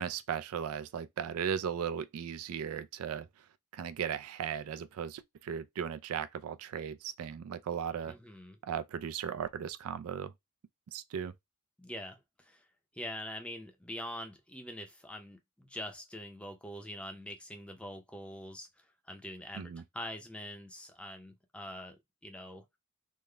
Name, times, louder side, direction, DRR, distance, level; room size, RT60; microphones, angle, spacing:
voice 1, 0.0-3.3 3.7-8.1 8.6-10.3 10.9-11.3 19.5-19.8, right 8 dB, 80° right, 0.3 m, -37 dB
voice 2, 8.0-8.6 11.8-12.6 12.9-22.0 22.2-22.6, left 1 dB, 5° left, 0.5 m, -44 dB
3.7 x 2.1 x 3.3 m
head